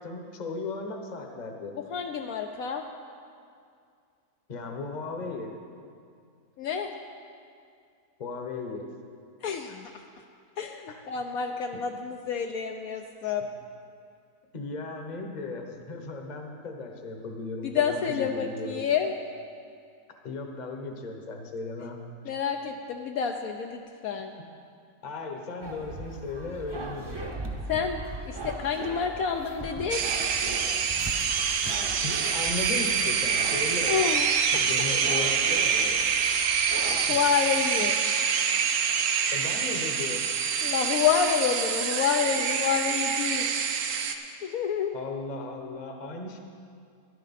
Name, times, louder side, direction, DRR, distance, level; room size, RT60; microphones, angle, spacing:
voice 1, 0.0-1.7 4.5-5.5 8.2-8.9 9.7-9.8 14.5-18.8 20.2-22.3 25.0-27.3 32.0-34.0 34.5-36.1 37.1-37.2 39.3-40.3 44.9-46.4, left 3 dB, 30° left, 3 dB, 0.9 m, -36 dB
voice 2, 1.7-2.8 6.6-6.9 9.4-10.0 10.6-13.5 17.6-19.2 22.2-24.3 27.7-30.0 33.9-34.6 37.1-38.0 40.6-43.5 44.2-44.9, left 7 dB, 70° left, 4 dB, 1.0 m, -28 dB
sound 1, 25.6-37.1, right 2 dB, 20° right, 0.8 m, -39 dB
sound 2, 29.9-44.1, right 6 dB, 60° right, 1.0 m, -26 dB
14.0 x 11.0 x 4.2 m, 2.3 s
omnidirectional pair, 1.7 m